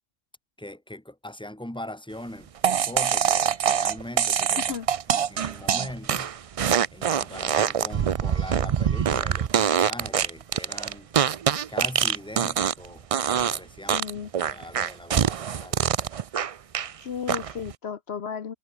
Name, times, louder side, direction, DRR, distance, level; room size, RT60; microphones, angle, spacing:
voice 1, 0.6-4.7 5.1-6.3 6.9-11.1 11.7-13.1 13.3-14.0 14.4-15.8, left 1 dB, 5° left, 3.0 m, -40 dB
sound 1, 2.6-12.9 13.1-13.6 13.9-16.9 17.3-17.7, right 8 dB, 55° right, 0.4 m, -24 dB
voice 2, 13.9-14.3 17.0-18.5, left 7 dB, 65° left, 1.3 m, -34 dB
omnidirectional pair, 1.2 m